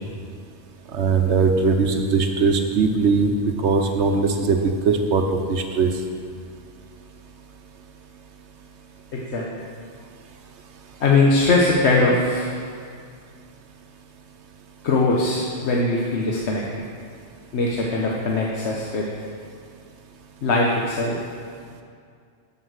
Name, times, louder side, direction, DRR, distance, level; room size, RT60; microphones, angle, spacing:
voice 1, 0.9-3.3 3.6-5.9, right 4 dB, 80° right, 5 dB, 1.2 m, -20 dB
voice 2, 9.1-9.6 11.0-12.6 14.8-16.8 17.5-19.0 20.4-21.2, left 2 dB, 75° left, -2 dB, 1.2 m, -21 dB
8.4 x 7.8 x 6.4 m, 2.2 s
omnidirectional pair, 1.2 m